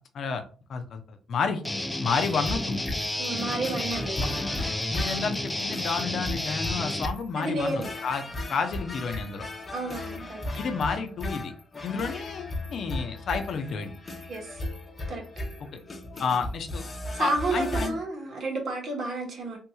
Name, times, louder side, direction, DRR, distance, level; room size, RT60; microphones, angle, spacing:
voice 1, 0.7-1.6 2.0-2.8 4.2-4.3 4.9-8.2 8.5-9.5 10.6-11.5 11.8-13.9 16.2-16.8 17.2-18.0, left 5 dB, 60° left, 6 dB, 0.6 m, -30 dB
Guitar, 1.6-7.1, left 1 dB, 10° left, 0.4 m, -31 dB
sound 1, 2.2-17.9, left 1 dB, 30° left, 0.8 m, -36 dB
voice 2, 3.2-4.2 7.4-7.9 9.7-10.4 14.3-14.6 15.1-15.2 17.1-19.6, right 2 dB, 55° right, 1 dB, 1.2 m, -30 dB
3.5 x 2.9 x 2.3 m, 0.38 s
cardioid pair, 90°, 0 cm